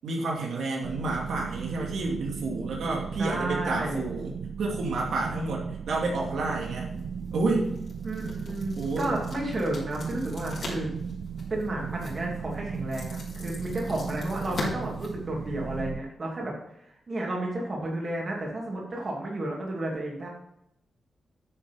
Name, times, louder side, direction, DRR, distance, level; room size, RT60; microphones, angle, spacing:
voice 1, 0.0-6.9 7.3-7.7 8.7-9.1 14.5-14.9, right 2 dB, 85° right, -1 dB, 2.5 m, -30 dB
sound 1, 0.8-16.0, right 6 dB, 55° right, 0.3 m, -36 dB
voice 2, 3.2-4.0 8.0-10.9 11.5-16.5 17.1-20.3, right 1 dB, 30° right, -2 dB, 2.7 m, -32 dB
sound 2, 6.8-15.8, left 3 dB, 50° left, 3.3 m, -43 dB
9.4 x 7.0 x 5.5 m, 0.79 s
wide cardioid pair, 175°, 0 cm